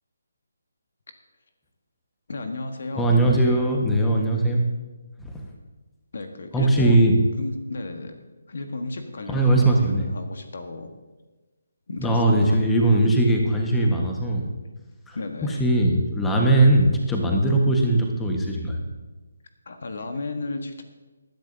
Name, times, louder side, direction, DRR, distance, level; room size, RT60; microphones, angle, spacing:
voice 1, 2.3-3.1 6.1-7.0 7.4-8.2 8.5-10.9 11.9-12.6 15.1-15.6 19.6-20.8, left 2 dB, 60° left, 6 dB, 1.3 m, -33 dB
voice 2, 3.0-4.6 5.2-5.4 6.5-7.2 9.3-10.0 12.0-14.5 15.1-15.2 15.4-18.8, right 1 dB, 5° left, 0 dB, 1.4 m, -20 dB
20.0 x 10.5 x 2.8 m, 1.2 s
figure-of-eight pair, 150°, 0 cm